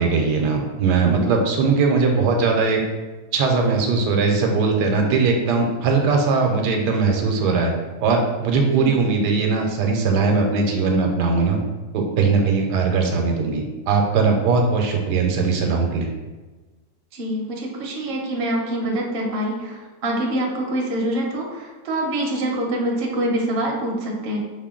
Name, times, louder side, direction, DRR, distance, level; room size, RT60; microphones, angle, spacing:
voice 1, 0.0-2.8 3.3-7.7 8.0-11.6 11.9-16.1, right 4 dB, 80° right, 2 dB, 1.2 m, -20 dB
voice 2, 17.1-24.4, right 1 dB, 50° right, 0 dB, 0.7 m, -25 dB
5.7 x 2.2 x 3.6 m, 1.2 s
omnidirectional pair, 1.8 m